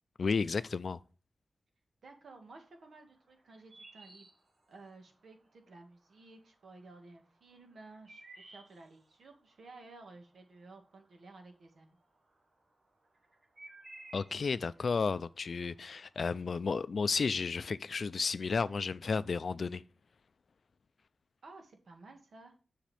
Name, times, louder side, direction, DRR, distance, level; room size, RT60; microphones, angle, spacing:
voice 1, 0.2-1.0 14.1-19.8, left 5 dB, 55° left, 0.4 m, -32 dB
voice 2, 2.0-4.3 4.7-8.2 8.5-12.0 21.4-22.5, right 3 dB, 85° right, 1.8 m, -54 dB
sound 1, 2.6-5.2 5.6-6.3 6.7-11.8 12.1-16.4, right 2 dB, 50° right, 1.5 m, -56 dB
7.6 x 6.5 x 3.4 m
wide cardioid pair, 155°, 0 cm